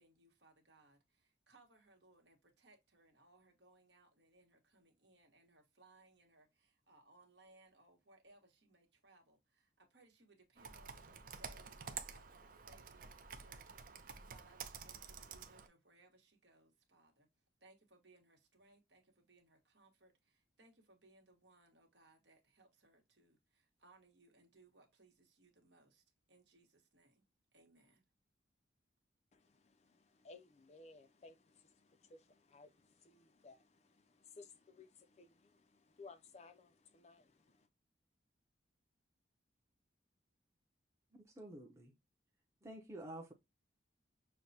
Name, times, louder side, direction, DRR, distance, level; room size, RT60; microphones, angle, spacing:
voice 1, 0.0-17.3 17.6-27.2 27.5-28.0, right 2 dB, 70° right, 1.4 m, -68 dB
Computer keyboard, 10.6-15.7, right 6 dB, 45° right, 0.5 m, -50 dB
voice 2, 29.3-37.7, left 3 dB, 35° left, 0.4 m, -60 dB
voice 3, 41.2-41.9 42.6-43.3, right 1 dB, 15° right, 0.7 m, -50 dB
6.5 x 2.2 x 2.7 m
head